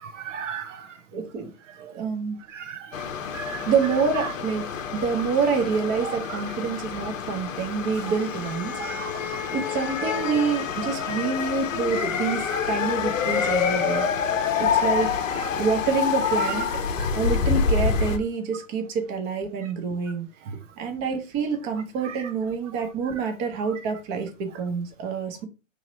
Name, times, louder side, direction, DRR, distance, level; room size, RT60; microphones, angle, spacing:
voice 1, 0.0-1.0 1.7-1.9 2.5-3.1 3.3-3.7 4.2-4.3 6.0-6.2 8.1-8.2 8.8-9.5 10.2-10.3 11.9-12.1 12.5-12.6 13.3-14.1 14.5-14.6 15.0-15.5 16.4-16.5 17.0-17.1 20.5-20.6 22.0-22.3 23.1-23.3 23.6-23.8, right 7 dB, 65° right, 0.6 m, -37 dB
voice 2, 1.1-1.5 1.8-2.4 3.5-9.0 9.5-14.0 14.6-15.1 15.6-16.7 17.1-20.3 20.8-25.5, right 5 dB, 30° right, 0.9 m, -27 dB
sound 1, 2.9-18.2, left 6 dB, 80° left, 0.7 m, -27 dB
3.1 x 2.9 x 3.9 m
hypercardioid pair, 125°, 39 cm